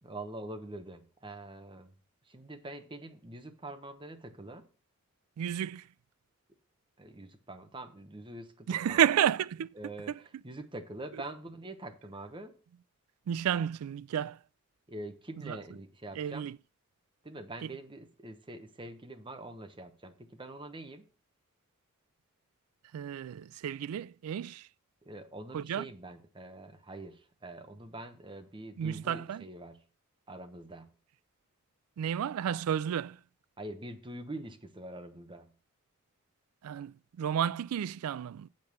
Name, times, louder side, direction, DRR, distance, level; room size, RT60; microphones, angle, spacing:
voice 1, 0.0-1.9 2.3-4.6 7.0-9.1 9.8-12.5 14.9-16.5 17.2-21.0 25.0-29.8 30.3-30.9 33.6-35.5, right 2 dB, 25° right, 1.0 m, -44 dB
voice 2, 5.4-5.8 8.7-9.7 13.3-14.4 15.4-15.6 16.2-16.6 22.9-24.7 25.5-25.9 28.8-29.4 32.0-33.2 36.6-38.5, right 9 dB, 90° right, 0.3 m, -31 dB
7.8 x 5.3 x 6.8 m
head